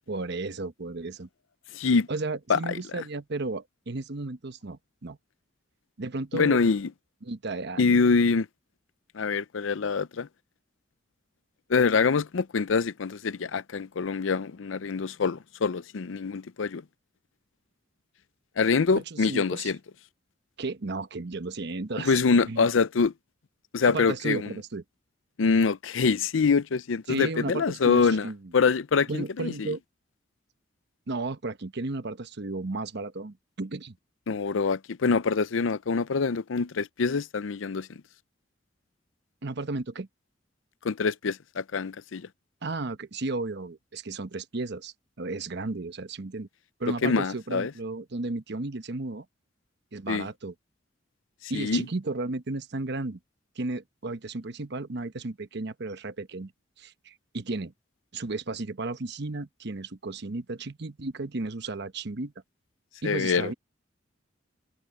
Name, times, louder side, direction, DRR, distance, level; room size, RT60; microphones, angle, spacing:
voice 1, 0.1-1.3 2.1-5.2 6.0-6.6 7.2-8.0 19.0-19.7 20.6-22.2 22.5-22.7 23.8-24.8 27.1-28.4 29.1-29.8 31.1-34.0 39.4-40.1 42.6-46.5 46.8-49.3 49.9-50.5 51.5-53.2 53.6-56.5 56.8-57.7 58.1-62.3 63.0-63.5, right 3 dB, 60° right, 1.0 m, -34 dB
voice 2, 1.7-2.1 2.5-3.0 6.3-6.9 7.8-8.5 9.1-10.3 11.7-16.8 18.6-19.8 22.0-23.1 23.7-24.5 25.4-29.8 34.3-37.9 40.8-42.3 47.0-47.7 50.1-50.3 51.5-51.9 63.0-63.5, left 5 dB, 80° left, 0.6 m, -25 dB
head